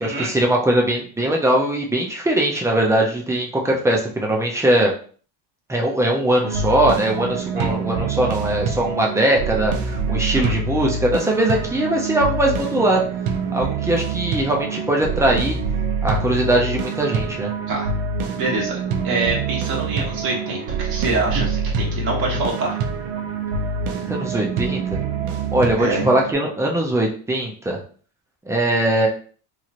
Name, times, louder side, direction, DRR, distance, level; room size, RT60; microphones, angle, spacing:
voice 1, 0.0-4.9 5.7-13.0 13.5-15.6 16.0-17.5 24.0-25.0 25.5-27.8 28.5-29.1, right 1 dB, 5° right, 0 dB, 0.4 m, -20 dB
sound 1, 6.4-26.3, right 5 dB, 75° right, 0.7 m, -26 dB
voice 2, 18.3-22.8 25.8-26.1, right 3 dB, 50° right, -2 dB, 1.2 m, -25 dB
3.1 x 2.8 x 2.4 m, 0.42 s
cardioid pair, 135°, 47 cm